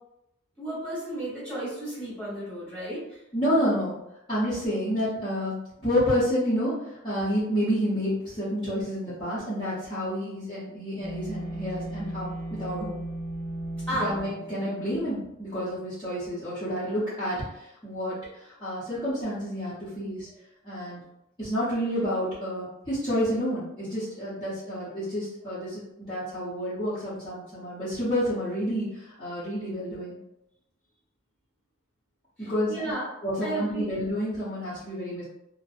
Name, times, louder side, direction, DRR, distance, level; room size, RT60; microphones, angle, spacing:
voice 1, 0.6-3.2 13.9-14.1 20.3-20.4 32.4-33.1 33.4-33.9, right 1 dB, 5° left, -10 dB, 1.1 m, -33 dB
voice 2, 3.3-3.9 4.3-5.5 5.8-6.8 7.0-13.0 14.0-20.3 20.6-21.0 21.4-30.2 32.4-32.8 33.2-35.2, equal, 25° left, -13 dB, 0.7 m, -29 dB
sound 1, 11.0-15.2, right 1 dB, 35° right, 0.6 m, -36 dB
2.5 x 2.0 x 2.4 m, 0.85 s
head